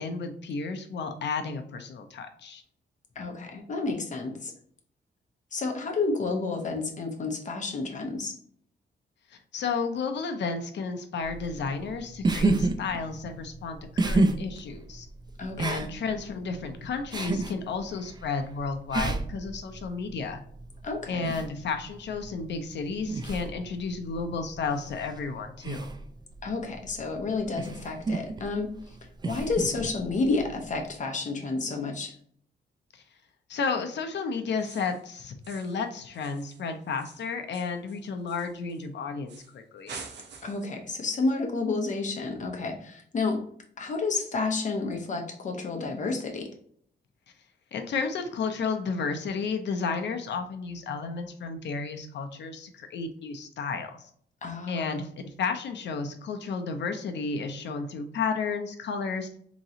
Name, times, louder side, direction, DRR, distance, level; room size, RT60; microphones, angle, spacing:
voice 1, 0.0-2.6 9.3-15.1 15.6-20.4 21.1-25.9 32.9-33.0 33.5-40.0 47.7-54.1 54.7-59.3, left 5 dB, 70° left, 6 dB, 0.7 m, -32 dB
voice 2, 3.1-4.5 5.5-8.3 15.4-15.9 20.8-21.3 26.4-29.0 29.2-32.2 40.4-43.4 43.8-46.5 54.4-55.0, left 3 dB, 40° left, 2 dB, 0.9 m, -30 dB
sound 1, 11.2-30.9, right 2 dB, 25° right, 0.4 m, -32 dB
sound 2, 34.6-35.0 35.4-35.8 36.1-38.8 39.3-39.6 39.9-40.7, right 5 dB, 65° right, 0.8 m, -46 dB
3.7 x 3.0 x 2.8 m, 0.62 s
wide cardioid pair, 155°, 19 cm